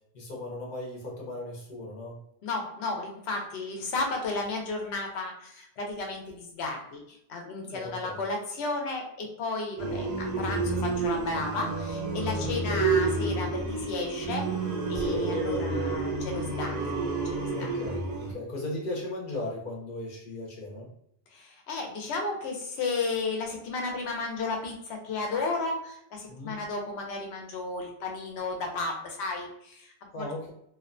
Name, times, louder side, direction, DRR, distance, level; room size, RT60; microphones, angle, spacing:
voice 1, 0.1-2.2 7.7-8.2 12.4-12.9 14.9-15.3 17.5-20.9 26.3-26.6 30.1-30.5, left 1 dB, 55° left, -2 dB, 0.8 m, -37 dB
voice 2, 2.4-14.4 14.9-17.0 17.3-17.7 21.3-30.3, left 3 dB, 85° left, 2 dB, 0.9 m, -33 dB
sound 1, 9.8-18.3, right 3 dB, 50° right, 0.6 m, -29 dB
2.5 x 2.1 x 2.5 m, 0.72 s
omnidirectional pair, 1.1 m